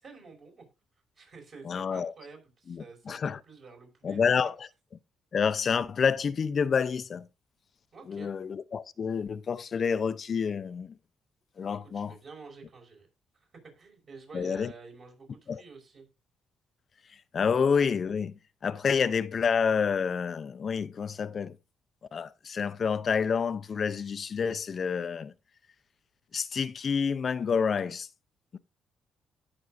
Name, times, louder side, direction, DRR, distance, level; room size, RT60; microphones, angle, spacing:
voice 1, 0.0-0.7 1.2-4.5 7.9-8.3 11.7-13.1 13.3-13.5 13.8-16.1, right 4 dB, 50° right, 5.3 m, -50 dB
voice 2, 1.6-2.1 2.7-3.4 4.0-4.7 5.3-7.3 8.1-10.9 11.6-12.1 14.3-14.7 15.5-15.6 17.3-18.3 18.6-21.6 22.1-25.3 26.3-28.1, left 6 dB, 50° left, 0.5 m, -28 dB
17.5 x 6.0 x 2.5 m
cardioid pair, 90°, 0 cm